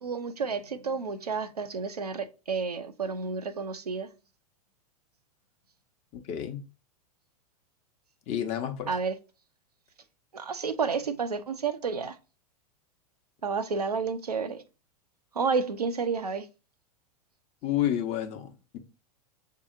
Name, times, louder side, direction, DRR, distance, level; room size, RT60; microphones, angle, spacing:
voice 1, 0.0-4.1 8.9-9.1 10.3-12.2 13.4-14.6 15.4-16.5, right 5 dB, 85° right, 0.5 m, -30 dB
voice 2, 6.1-6.6 8.3-8.9 17.6-18.8, left 11 dB, 35° left, 0.8 m, -30 dB
6.9 x 2.8 x 2.5 m
figure-of-eight pair, 95°, 19 cm